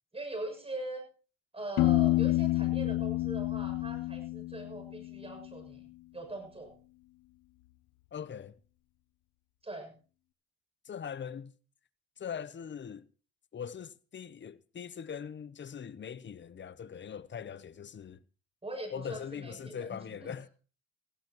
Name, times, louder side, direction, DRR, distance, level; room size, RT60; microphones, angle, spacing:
voice 1, 0.1-1.0 1.5-5.8 6.1-6.7 9.6-9.9 18.6-20.4, right 2 dB, 20° right, 6.9 m, -41 dB
Piano, 1.8-5.5, left 17 dB, 90° left, 0.7 m, -29 dB
voice 2, 8.1-8.6 10.8-11.5 12.2-13.1 13.5-18.2 18.9-20.5, left 7 dB, 40° left, 0.8 m, -41 dB
19.0 x 15.5 x 3.0 m
cardioid pair, 90°, 30 cm